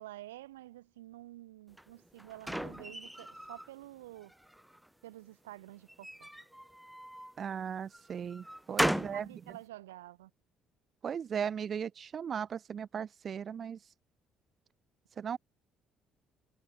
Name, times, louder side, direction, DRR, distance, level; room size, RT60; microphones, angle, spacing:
voice 1, 0.0-4.3 5.0-6.3 8.8-10.3, right 16 dB, 80° right, 6.8 m, -49 dB
sound 1, 1.8-3.7 4.2-4.9 5.9-7.4 7.9-9.3, equal, 5° right, 0.8 m, -36 dB
voice 2, 7.4-9.3 11.0-13.9 15.2-15.4, right 7 dB, 45° right, 3.1 m, -37 dB
hypercardioid pair, 50°, 0 cm